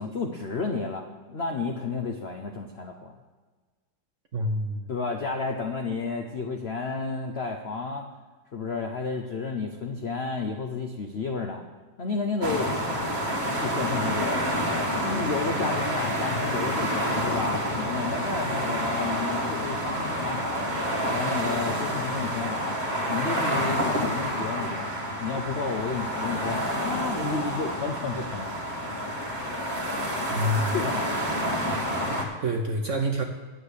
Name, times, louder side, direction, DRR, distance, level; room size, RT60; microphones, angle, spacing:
voice 1, 0.0-3.2 4.9-8.1 8.5-11.6 12.0-12.7 13.6-14.5 15.0-20.7 21.1-22.8 23.1-24.9 25.2-28.6 30.7-31.2 32.0-32.3, left 4 dB, 65° left, 3 dB, 0.6 m, -32 dB
voice 2, 4.3-4.9 30.3-30.7 32.4-33.2, right 1 dB, 55° right, 3 dB, 0.9 m, -27 dB
sound 1, 12.4-32.2, equal, 25° right, 1.5 m, -28 dB
9.8 x 7.7 x 6.5 m, 1.4 s
omnidirectional pair, 2.2 m